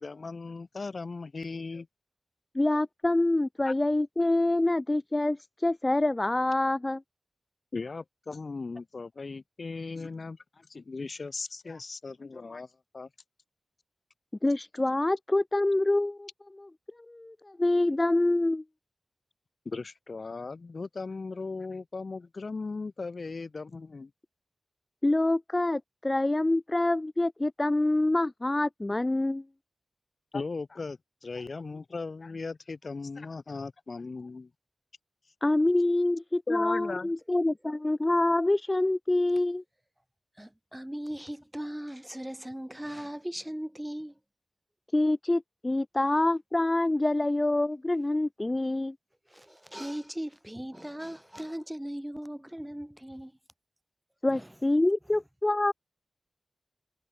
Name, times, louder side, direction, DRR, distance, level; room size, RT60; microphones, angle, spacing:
voice 1, 0.0-1.9 3.6-3.7 7.7-12.7 12.9-13.1 19.6-24.1 30.3-34.5 36.5-37.1, left 4 dB, 55° left, 1.6 m, -37 dB
voice 2, 2.5-7.0 14.4-16.3 16.6-16.7 17.1-18.6 25.0-29.4 35.4-39.6 44.9-49.0 54.2-55.7, left 2 dB, 25° left, 0.3 m, -26 dB
voice 3, 40.4-44.1 49.3-53.3 54.3-54.5, equal, 5° right, 2.3 m, -38 dB
wide cardioid pair, 105°, 0 cm